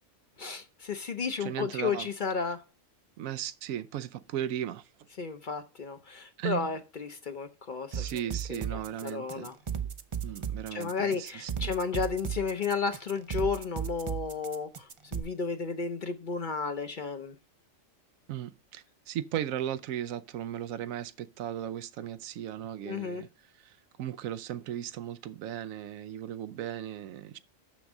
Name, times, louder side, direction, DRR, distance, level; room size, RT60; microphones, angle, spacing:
voice 1, 0.4-2.6 5.2-8.1 8.5-9.5 10.7-17.3 22.8-23.2, left 5 dB, 45° left, 0.7 m, -33 dB
voice 2, 1.4-2.1 3.2-4.9 6.4-6.7 7.9-9.5 10.2-11.7 18.3-23.3 23.6-27.4, right 11 dB, 85° right, 1.0 m, -36 dB
sound 1, 7.9-15.2, right 8 dB, 50° right, 0.3 m, -35 dB
6.4 x 6.1 x 6.0 m
omnidirectional pair, 1.4 m